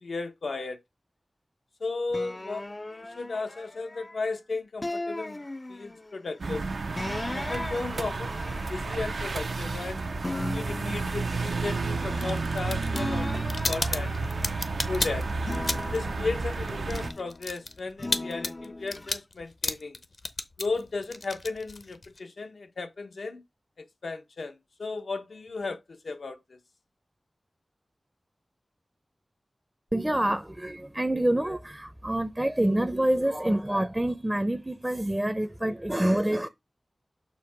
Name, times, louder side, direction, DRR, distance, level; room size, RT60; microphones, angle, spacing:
voice 1, 0.0-0.8 1.8-5.4 5.7-6.7 7.3-10.1 10.5-14.1 14.9-15.3 15.9-20.0 20.6-23.4 24.0-26.6, left 3 dB, 85° left, 1.0 m, -35 dB
sound 1, 2.1-4.3 4.8-6.2 7.0-9.9 10.2-12.6 12.9-14.9 15.4-17.4 18.0-19.1, left 2 dB, 30° left, 0.4 m, -38 dB
sound 2, 6.4-17.1, right 3 dB, 85° right, 0.7 m, -31 dB
sound 3, 12.2-16.1 16.3-22.2, left 2 dB, 60° left, 0.8 m, -33 dB
voice 2, 29.9-36.5, right 1 dB, 15° right, 0.6 m, -27 dB
6.9 x 2.8 x 5.9 m
wide cardioid pair, 85°, 0 cm